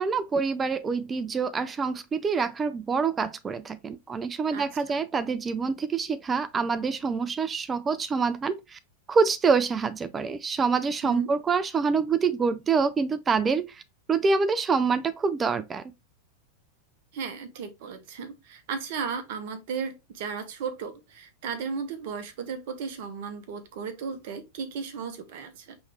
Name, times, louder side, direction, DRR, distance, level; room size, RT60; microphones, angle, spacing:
voice 1, 0.0-8.8 9.1-13.8 14.1-15.8, right 5 dB, 20° right, 0.4 m, -26 dB
voice 2, 4.5-5.0 11.0-11.3 17.1-25.8, right 6 dB, 50° right, 0.9 m, -35 dB
5.3 x 3.1 x 3.2 m
figure-of-eight pair, 90°, 0 cm